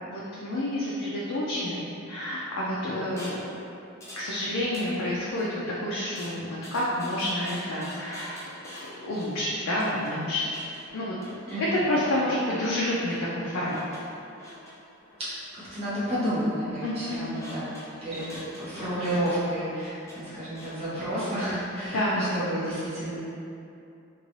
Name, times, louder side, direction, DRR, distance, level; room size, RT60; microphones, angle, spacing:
voice 1, 0.0-3.4 4.2-5.5 5.8-8.4 9.0-10.6 10.9-11.1 11.6-13.8 16.8-17.3 21.9-22.3, left 1 dB, 85° left, -6 dB, 0.4 m, -29 dB
sound 1, 3.2-3.5 4.0-4.3 4.6-5.4 6.2-21.8, left 1 dB, 15° left, 0.6 m, -47 dB
voice 2, 11.5-11.9 15.2-17.7 18.0-23.2, equal, 30° right, -13 dB, 1.3 m, -31 dB
3.0 x 2.6 x 3.0 m, 2.6 s
head